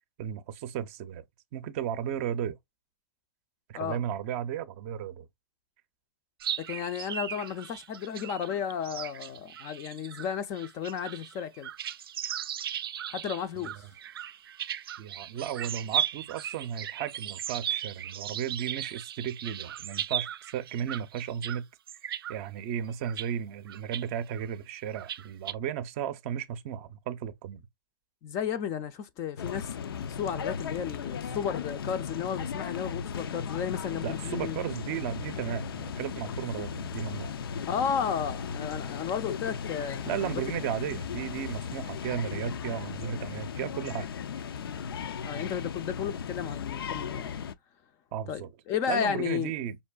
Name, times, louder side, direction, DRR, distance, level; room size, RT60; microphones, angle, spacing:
voice 1, 0.2-1.2 1.5-2.6 3.7-5.3 15.0-21.7 22.3-27.6 34.0-37.3 40.1-44.1 48.1-48.5 48.9-49.8, right 9 dB, 35° right, 0.5 m, -34 dB
sound 1, 6.4-21.6 21.9-22.4 22.9-23.3 23.7-24.0 24.3-24.4 24.9-25.5, right 10 dB, 85° right, 0.4 m, -36 dB
voice 2, 6.6-11.7 13.1-13.7 28.2-34.6 37.7-40.6 45.2-47.4 48.3-49.5, left 8 dB, 25° left, 0.4 m, -33 dB
sound 2, 29.4-47.5, left 6 dB, 85° left, 0.5 m, -36 dB
5.3 x 2.6 x 2.2 m
hypercardioid pair, 150°, 12 cm